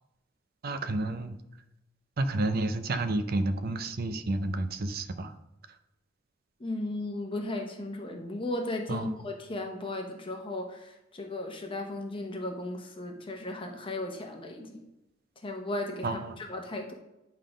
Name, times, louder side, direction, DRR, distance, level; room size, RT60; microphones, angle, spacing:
voice 1, 0.6-1.4 2.2-5.3 8.9-9.1 16.0-16.3, right 2 dB, 50° right, 9 dB, 0.6 m, -30 dB
voice 2, 6.6-14.8 15.4-16.2 16.5-16.9, left 2 dB, 25° left, 3 dB, 0.8 m, -36 dB
9.7 x 3.7 x 5.0 m, 0.96 s
head